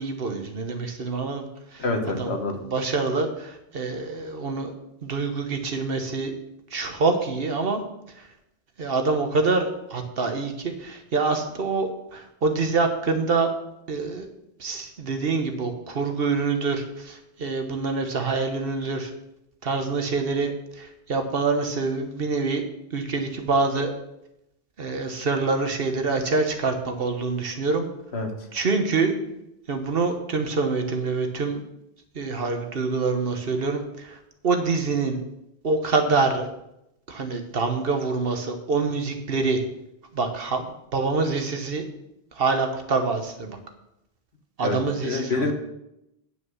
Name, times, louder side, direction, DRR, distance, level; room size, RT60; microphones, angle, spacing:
voice 1, 0.0-1.5 1.7-1.8 2.2-2.3 2.6-4.7 5.0-6.3 6.7-7.8 8.8-13.5 13.9-14.3 14.6-19.1 19.6-22.6 22.9-23.9 24.8-27.9 28.5-29.1 29.7-31.6 32.1-34.2 34.4-35.2 35.6-36.5 37.1-39.6 40.1-41.8 42.4-43.6 44.6-45.5, right 4 dB, 60° right, 5 dB, 1.3 m, -26 dB
voice 2, 1.8-2.5 28.1-28.3 44.6-44.8 45.0-45.5, left 3 dB, 80° left, 4 dB, 1.6 m, -26 dB
9.4 x 5.8 x 6.2 m, 0.85 s
omnidirectional pair, 1.1 m